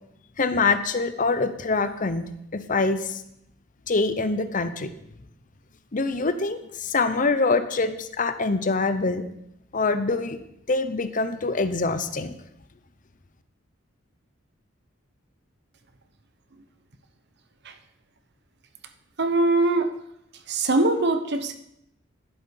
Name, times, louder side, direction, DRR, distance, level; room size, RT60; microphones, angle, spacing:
voice 1, 0.4-2.2 2.5-3.2 3.9-4.9 5.9-9.3 9.7-10.4 10.7-12.3, left 3 dB, 40° left, 10 dB, 0.8 m, -24 dB
voice 2, 19.2-19.9 20.5-21.6, right 2 dB, 60° right, 8 dB, 1.0 m, -22 dB
11.5 x 11.0 x 4.7 m, 0.78 s
head